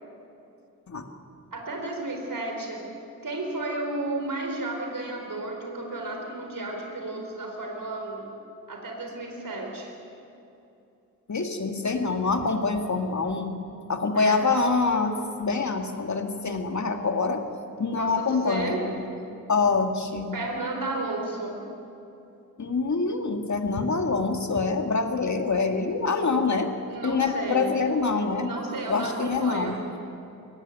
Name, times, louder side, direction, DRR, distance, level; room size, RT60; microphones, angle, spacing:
voice 1, 1.5-2.8 3.2-8.3 8.7-9.9 14.1-14.4 18.0-18.8 20.3-21.6 26.3-26.4 26.9-27.7 28.4-29.8, right 2 dB, 70° right, 1 dB, 4.2 m, -32 dB
voice 2, 11.3-13.5 13.9-17.4 17.8-18.8 19.5-20.3 22.6-26.7 27.0-28.5 28.9-29.8, left 4 dB, 55° left, 4 dB, 2.1 m, -25 dB
23.0 x 17.5 x 9.1 m, 2.8 s
wide cardioid pair, 90°, 34 cm